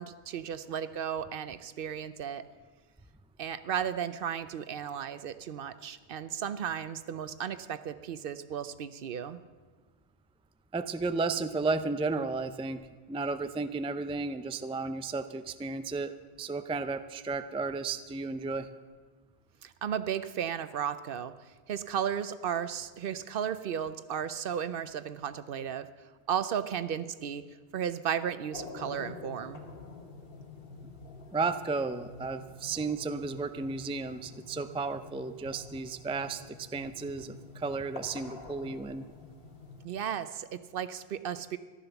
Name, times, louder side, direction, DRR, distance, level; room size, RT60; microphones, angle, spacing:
voice 1, 0.0-2.5 3.4-9.4 19.6-21.3 21.7-25.9 26.3-27.4 27.7-29.6 39.8-41.6, right 8 dB, 65° right, 13 dB, 0.8 m, -34 dB
voice 2, 10.7-16.1 16.4-18.7 31.3-39.1, right 3 dB, 10° right, 10 dB, 0.3 m, -33 dB
sound 1, 28.5-39.9, left 3 dB, 65° left, 1.5 m, -47 dB
14.0 x 11.5 x 6.9 m, 1.5 s
omnidirectional pair, 1.0 m